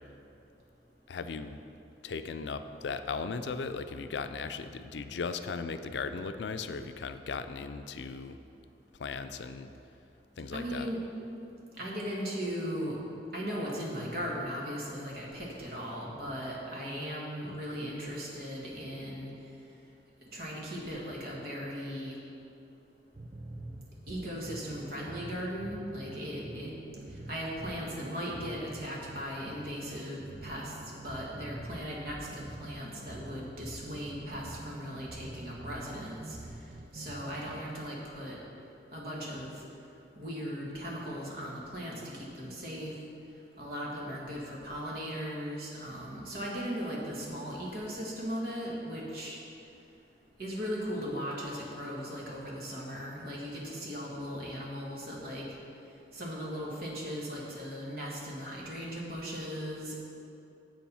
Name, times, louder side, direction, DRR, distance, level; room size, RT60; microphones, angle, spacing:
voice 1, 1.1-1.6 2.0-8.4 9.0-9.7 10.4-10.9, left 4 dB, 80° left, 9 dB, 0.4 m, -37 dB
voice 2, 10.5-11.0 11.8-13.0 13.3-19.3 20.3-22.2 24.1-26.7 27.3-30.7 31.0-36.4 36.9-38.4 38.9-39.5 40.2-42.9 43.6-49.4 50.4-55.4 56.1-60.0, equal, 55° right, -4 dB, 1.8 m, -38 dB
sound 1, 23.1-37.6, right 2 dB, 25° right, 0.5 m, -45 dB
7.8 x 7.3 x 5.5 m, 2.7 s
head